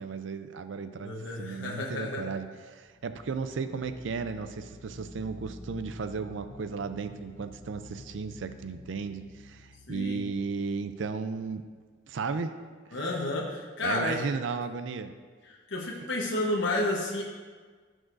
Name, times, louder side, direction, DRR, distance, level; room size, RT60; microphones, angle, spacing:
voice 1, 0.0-11.6 12.1-12.5 13.8-15.1, right 5 dB, 70° right, 10 dB, 0.4 m, -35 dB
voice 2, 1.0-2.3 9.9-10.2 12.9-14.2 15.4-17.2, left 2 dB, 70° left, -2 dB, 1.0 m, -31 dB
sound 1, 2.8-11.5, left 1 dB, 30° left, 1.0 m, -50 dB
15.5 x 6.3 x 2.6 m, 1.5 s
head